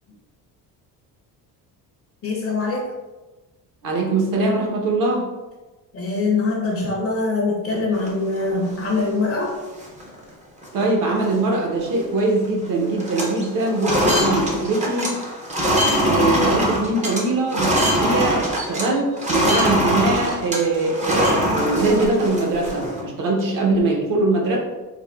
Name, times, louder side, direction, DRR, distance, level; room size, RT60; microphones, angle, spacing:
voice 1, 2.2-2.9 5.9-9.6, left 3 dB, 35° left, -2 dB, 0.5 m, -23 dB
voice 2, 3.8-5.3 10.7-15.1 16.0-24.6, right 2 dB, 55° right, -1 dB, 0.8 m, -22 dB
sound 1, 7.9-9.0 9.5-9.6 9.8-10.2 10.6-10.8 11.1-12.2 12.4-12.7 12.9-18.9 19.2-23.0, equal, 20° right, 0.4 m, -22 dB
3.4 x 2.1 x 2.2 m, 1.2 s
cardioid pair, 125°, 39 cm